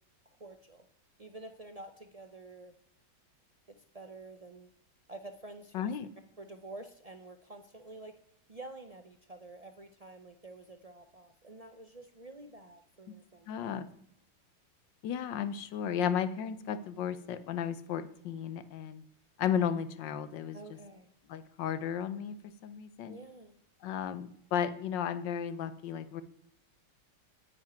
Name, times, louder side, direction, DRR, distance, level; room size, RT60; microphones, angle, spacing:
voice 1, 0.4-0.8 1.2-2.7 3.9-4.7 5.1-5.9 6.4-8.1 8.5-13.7 20.5-21.1 23.1-23.5, right 2 dB, 65° right, 7 dB, 0.3 m, -49 dB
voice 2, 5.7-6.1 13.5-13.9 15.0-19.0 19.4-20.6 21.3-22.4 22.6-23.2 23.8-26.2, left 8 dB, 80° left, 13 dB, 1.5 m, -34 dB
9.8 x 6.5 x 8.8 m, 0.75 s
omnidirectional pair, 2.0 m